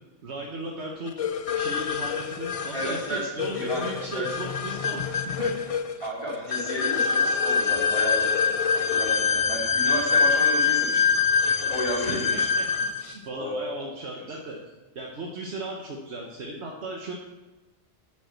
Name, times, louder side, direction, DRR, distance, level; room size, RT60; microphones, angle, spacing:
voice 1, 0.2-5.5 12.0-12.7 12.9-14.6 14.9-17.1, right 2 dB, 65° right, -1 dB, 1.3 m, -36 dB
sound 1, 1.2-13.1, left 6 dB, 55° left, 0.4 m, -25 dB
voice 2, 2.7-4.3 6.0-11.1 11.4-12.5 13.3-14.2, equal, 25° right, -5 dB, 2.9 m, -33 dB
7.9 x 6.2 x 7.7 m, 1.1 s
omnidirectional pair, 1.2 m